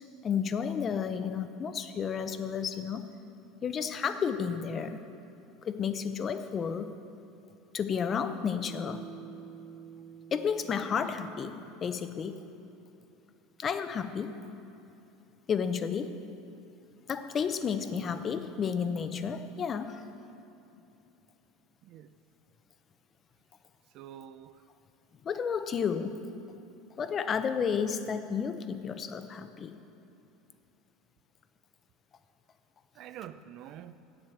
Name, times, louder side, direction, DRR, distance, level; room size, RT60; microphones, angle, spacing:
voice 1, 0.2-3.1 3.6-5.0 5.6-6.9 7.7-9.1 10.3-12.4 13.6-14.4 15.5-16.2 17.1-20.0 25.2-26.2 27.0-29.7, left 6 dB, 25° left, 10 dB, 0.5 m, -32 dB
Bass guitar, 8.6-13.0, right 7 dB, 15° right, 1.3 m, -50 dB
voice 2, 21.8-22.2 23.9-24.6 32.9-34.0, right 10 dB, 45° right, 13 dB, 0.4 m, -47 dB
8.6 x 7.5 x 7.9 m, 2.8 s
supercardioid pair, 150°, 0 cm